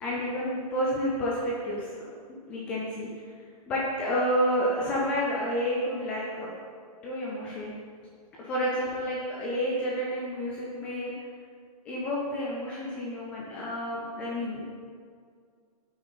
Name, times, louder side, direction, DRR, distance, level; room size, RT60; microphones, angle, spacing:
voice 1, 0.0-3.3 3.7-6.5 7.0-7.7 8.4-11.1 11.8-14.7, equal, 5° left, -5 dB, 0.4 m, -30 dB
7.9 x 6.1 x 7.5 m, 2.1 s
hypercardioid pair, 175°, 20 cm